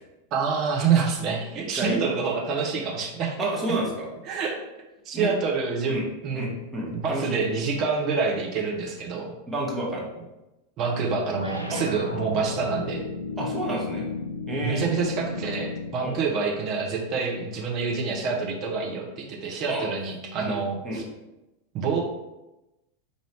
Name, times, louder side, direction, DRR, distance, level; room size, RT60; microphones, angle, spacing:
voice 1, 0.3-3.5 4.3-4.6 5.0-6.6 6.9-9.3 10.8-13.0 14.6-21.0 21.7-22.0, right 5 dB, 35° right, -1 dB, 0.8 m, -27 dB
voice 2, 3.4-4.1 5.1-5.3 5.9-6.1 6.3-7.4 9.5-10.1 11.7-11.8 13.4-14.1 14.5-15.0 16.0-16.1 19.7-19.9 20.4-20.5 20.8-21.0, right 1 dB, 15° right, -4 dB, 1.2 m, -29 dB
sound 1, 11.4-16.1, left 3 dB, 85° left, 0.4 m, -34 dB
4.6 x 2.6 x 3.3 m, 0.98 s
figure-of-eight pair, 90°, 0 cm